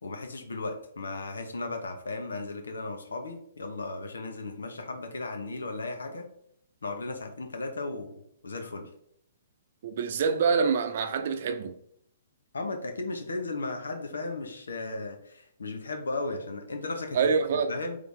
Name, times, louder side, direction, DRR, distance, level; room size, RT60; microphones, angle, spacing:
voice 1, 0.0-6.2 6.8-8.9 12.5-17.2 17.7-18.0, left 3 dB, 85° left, 0.9 m, -35 dB
voice 2, 9.8-11.8 17.1-17.7, right 5 dB, 60° right, 0.6 m, -26 dB
3.9 x 3.3 x 3.4 m
hypercardioid pair, 130°, 0 cm